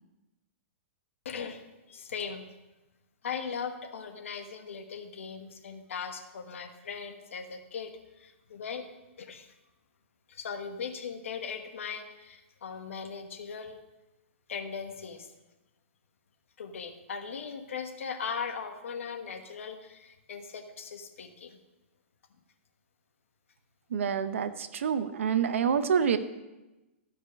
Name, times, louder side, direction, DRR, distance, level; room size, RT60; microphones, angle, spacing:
voice 1, 1.2-1.6 1.9-2.4 3.2-8.9 9.2-9.5 10.3-13.8 14.5-15.3 16.6-21.6, left 6 dB, 80° left, 6 dB, 1.2 m, -39 dB
voice 2, 23.9-26.2, right 7 dB, 80° right, 12 dB, 0.8 m, -27 dB
14.0 x 5.0 x 5.2 m, 1.1 s
hypercardioid pair, 140°, 7 cm